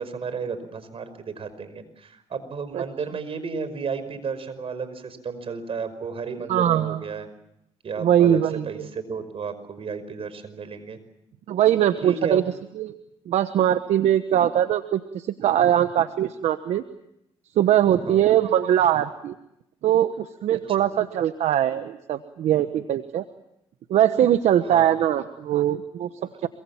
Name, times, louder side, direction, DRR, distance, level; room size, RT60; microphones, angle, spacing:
voice 1, 0.0-7.3 7.8-11.0 12.0-12.5 17.9-18.4 20.8-20.9 24.6-25.1 26.2-26.5, right 5 dB, 55° right, 12 dB, 5.4 m, -33 dB
voice 2, 6.5-7.0 8.0-8.9 11.5-12.4 12.8-12.9 13.3-16.8 17.6-19.3 19.8-23.2 23.9-26.1 26.4-26.5, right 11 dB, 75° right, 10 dB, 1.2 m, -21 dB
27.0 x 24.5 x 7.3 m, 0.81 s
supercardioid pair, 65°, 11 cm